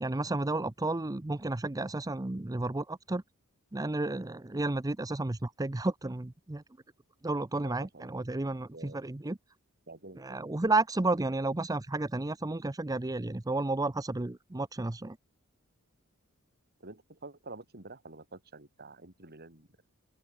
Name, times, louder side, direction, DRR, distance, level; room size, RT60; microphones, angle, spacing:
voice 1, 0.0-3.2 3.7-6.6 7.2-9.4 10.2-15.2, right 2 dB, 15° right, 0.6 m, -32 dB
voice 2, 7.6-8.1 8.7-9.0 9.9-10.4 16.8-19.7, right 3 dB, 45° right, 4.4 m, -48 dB
open air
head